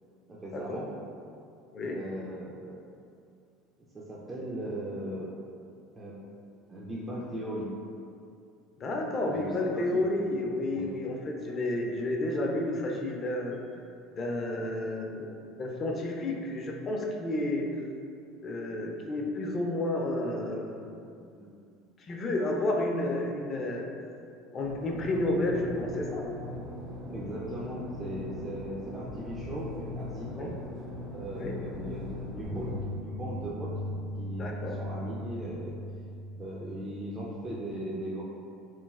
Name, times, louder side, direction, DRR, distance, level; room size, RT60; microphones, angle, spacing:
voice 1, 0.3-0.9 1.9-2.8 3.9-5.3 5.9-6.1 6.7-7.7 9.3-10.3 10.6-10.9 27.1-30.6 31.1-33.7 34.2-35.7 36.4-38.2, right 1 dB, 25° right, -6 dB, 0.4 m, -38 dB
voice 2, 8.8-13.6 14.2-17.7 18.4-21.0 21.3-21.5 22.1-23.9 24.5-26.3 30.4-30.5 31.3-31.6 34.4-34.8, left 1 dB, 40° left, 0 dB, 0.4 m, -31 dB
sound 1, 24.6-32.8, left 2 dB, 55° right, 0.7 m, -40 dB
sound 2, 32.4-37.4, equal, 75° right, 1.1 m, -38 dB
3.0 x 2.5 x 2.4 m, 2.4 s
supercardioid pair, 95°, 0 cm